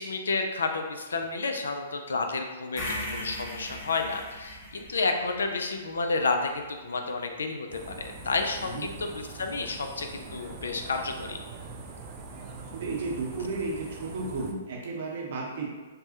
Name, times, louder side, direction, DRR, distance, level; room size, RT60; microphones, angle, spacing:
voice 1, 0.0-11.4, left 3 dB, 75° left, 5 dB, 0.3 m, -31 dB
sound 1, 2.8-6.9, equal, 40° left, 0.9 m, -39 dB
sound 2, 7.7-14.5, right 3 dB, 35° right, 0.3 m, -43 dB
voice 2, 12.7-15.7, right 3 dB, 60° right, -2 dB, 0.7 m, -33 dB
3.3 x 2.0 x 2.7 m, 1.3 s
figure-of-eight pair, 120°, 0 cm